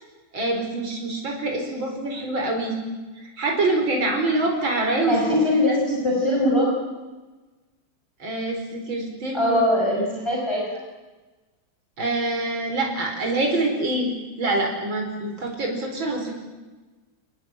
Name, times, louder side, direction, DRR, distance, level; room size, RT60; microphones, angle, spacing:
voice 1, 0.3-2.8 3.2-5.2 5.7-5.8 8.2-9.6 12.0-14.1 14.4-16.3, right 2 dB, 90° right, 2 dB, 5.2 m, -25 dB
voice 2, 5.1-6.7 9.3-10.8, left 1 dB, 15° left, -2 dB, 5.5 m, -21 dB
27.5 x 20.0 x 8.9 m, 1.2 s
omnidirectional pair, 2.1 m